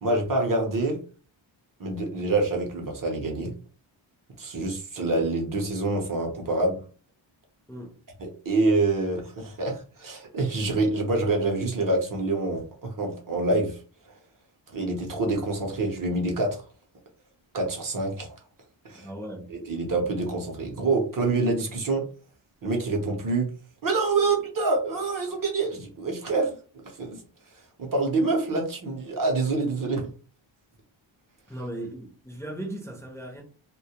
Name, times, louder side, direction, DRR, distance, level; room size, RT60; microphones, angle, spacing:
voice 1, 0.0-1.0 1.8-3.5 4.4-6.8 8.2-13.8 14.7-16.6 17.5-18.3 18.8-19.1 19.5-22.1 22.6-23.5 23.8-26.6 27.0-27.2 27.8-30.1, right 2 dB, 45° right, 0.6 m, -26 dB
voice 2, 7.7-8.0 18.9-19.5 31.5-33.4, right 1 dB, 5° left, 0.5 m, -37 dB
2.2 x 2.1 x 2.8 m
wide cardioid pair, 165°, 48 cm